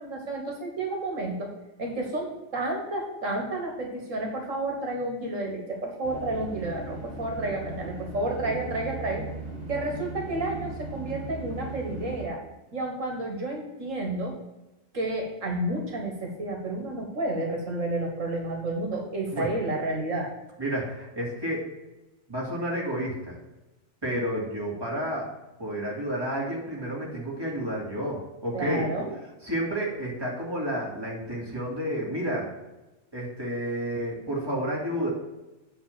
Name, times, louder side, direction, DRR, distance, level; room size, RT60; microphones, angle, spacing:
voice 1, 0.0-1.5 1.8-9.2 9.7-12.4 12.7-14.4 14.9-20.3 28.5-29.1, right 2 dB, 70° right, 1 dB, 2.0 m, -31 dB
sound 1, 6.0-12.3, right 2 dB, 45° right, 3.1 m, -38 dB
voice 2, 20.6-21.6 22.3-23.4 24.0-25.3 25.6-29.1 29.4-32.5 33.1-35.1, equal, 20° right, -4 dB, 2.7 m, -30 dB
9.3 x 3.8 x 6.9 m, 1.0 s
omnidirectional pair, 1.4 m